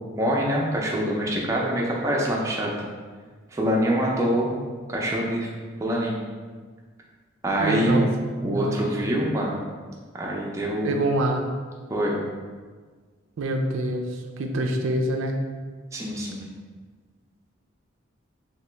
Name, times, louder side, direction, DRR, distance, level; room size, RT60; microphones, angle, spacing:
voice 1, 0.1-2.7 3.5-4.5 4.9-5.5 5.8-6.2 7.4-8.1 8.4-9.6 10.1-11.0 11.9-12.2 15.9-16.4, equal, 15° right, -3 dB, 0.4 m, -25 dB
voice 2, 7.6-8.1 8.4-8.9 10.8-11.4 13.4-14.1 14.4-15.3, right 1 dB, 85° right, 3 dB, 0.4 m, -25 dB
2.9 x 2.9 x 3.2 m, 1.5 s
head